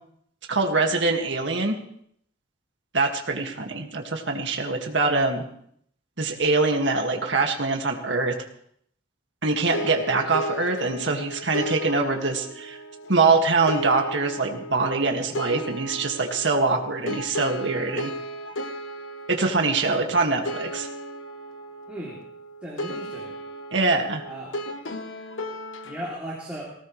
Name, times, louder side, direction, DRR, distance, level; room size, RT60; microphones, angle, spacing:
voice 1, 0.5-1.8 2.9-5.4 6.2-8.3 9.4-12.8 13.1-18.1 19.3-20.9 23.7-24.2, right 3 dB, 65° right, 2 dB, 2.1 m, -24 dB
sound 1, 9.7-26.2, equal, 85° left, 1.2 m, -35 dB
voice 2, 21.9-22.2 22.6-23.3 24.3-24.5 25.8-26.7, right 1 dB, 5° right, -6 dB, 3.1 m, -36 dB
19.5 x 17.5 x 3.3 m, 0.68 s
head